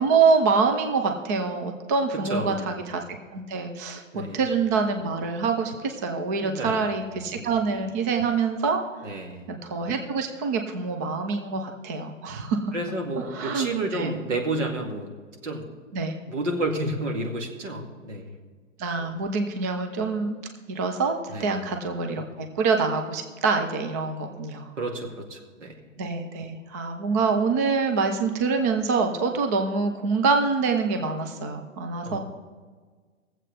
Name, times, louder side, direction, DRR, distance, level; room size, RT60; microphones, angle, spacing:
voice 1, 0.0-3.0 3.3-8.8 9.5-12.9 13.3-14.2 15.9-16.2 18.8-20.4 20.7-24.7 26.0-32.2, right 4 dB, 15° right, 5 dB, 0.3 m, -25 dB
voice 2, 2.3-2.7 4.1-4.4 6.4-6.8 7.3-7.5 9.0-9.4 12.7-15.1 15.4-15.6 16.3-18.3 21.3-21.6 24.8-25.7 32.0-32.2, right 2 dB, 70° right, 1 dB, 2.3 m, -30 dB
20.5 x 7.7 x 3.3 m, 1.5 s
figure-of-eight pair, 115°, 38 cm